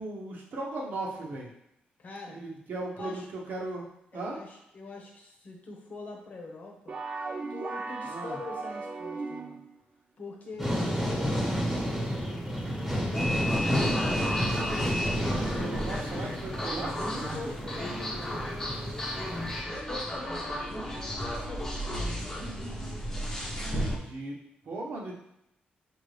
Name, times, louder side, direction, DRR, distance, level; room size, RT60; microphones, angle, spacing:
voice 1, 0.0-1.5 2.3-3.9 4.1-4.4 8.1-8.4 15.4-17.3 23.5-24.4 24.6-25.1, right 2 dB, 65° right, -1 dB, 1.0 m, -37 dB
voice 2, 2.0-2.4 3.0-3.3 4.1-7.0 7.5-9.6 10.2-14.7 17.0-22.3, left 2 dB, 50° left, 1 dB, 1.0 m, -43 dB
sound 1, 6.9-9.8, right 3 dB, 40° right, 0.5 m, -37 dB
sound 2, 10.6-19.6, equal, 5° right, 1.4 m, -31 dB
sound 3, 13.1-24.0, equal, 15° left, 0.9 m, -33 dB
5.4 x 2.6 x 3.2 m, 0.79 s
cardioid pair, 110°, 3 cm